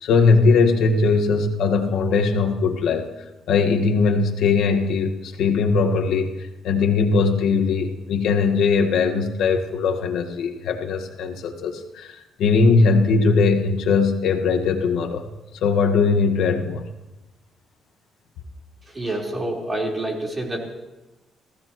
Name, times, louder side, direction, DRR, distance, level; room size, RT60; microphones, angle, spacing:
voice 1, 0.0-3.1 3.5-15.2 15.5-16.8, left 4 dB, 80° left, 3 dB, 1.7 m, -20 dB
voice 2, 18.9-20.6, right 1 dB, 25° right, -1 dB, 4.2 m, -27 dB
29.5 x 16.0 x 3.1 m, 1.0 s
cardioid pair, 90°, 0 cm